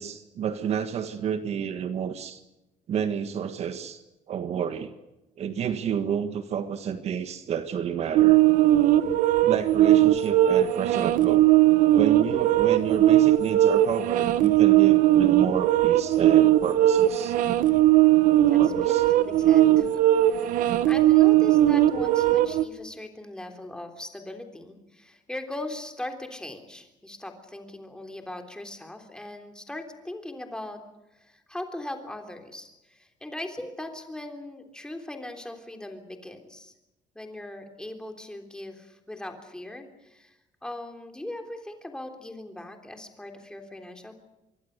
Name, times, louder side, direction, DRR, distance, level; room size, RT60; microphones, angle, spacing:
voice 1, 0.0-2.4 2.9-5.0 5.4-8.4 9.5-11.5 11.9-17.4 18.6-19.0, right 8 dB, 50° right, 9 dB, 1.6 m, -30 dB
sound 1, 8.1-22.6, right 13 dB, 75° right, 1.3 m, -19 dB
voice 2, 18.5-30.8 31.1-36.7 37.2-44.1, left 1 dB, 5° left, 5 dB, 3.4 m, -39 dB
25.5 x 23.5 x 6.6 m, 0.97 s
cardioid pair, 145°, 14 cm